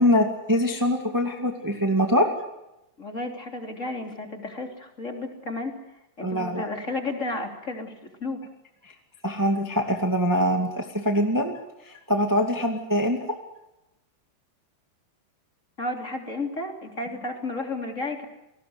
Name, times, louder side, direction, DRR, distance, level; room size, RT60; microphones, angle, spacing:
voice 1, 0.0-2.3 6.2-6.7 9.2-11.6 11.8-13.4, equal, 10° right, 3 dB, 0.9 m, -23 dB
voice 2, 3.0-5.7 6.2-8.4 15.8-18.3, left 2 dB, 20° left, 3 dB, 3.0 m, -32 dB
29.0 x 19.0 x 7.9 m, 0.91 s
omnidirectional pair, 4.6 m